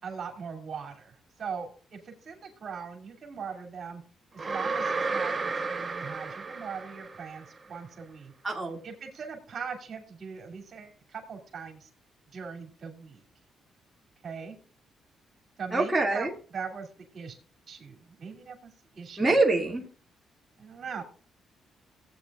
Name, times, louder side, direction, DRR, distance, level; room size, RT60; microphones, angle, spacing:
voice 1, 0.0-4.0 4.3-8.3 8.8-11.9 12.3-13.2 14.2-14.6 15.6-17.4 17.7-19.3 20.6-21.0, right 6 dB, 50° right, 3 dB, 2.4 m, -40 dB
sound 1, 4.4-7.5, right 4 dB, 30° right, 0.9 m, -32 dB
voice 2, 8.4-8.8 15.7-16.3 19.2-19.8, right 2 dB, 10° right, -1 dB, 2.1 m, -24 dB
16.5 x 8.5 x 2.4 m, 0.38 s
cardioid pair, 90°, 0 cm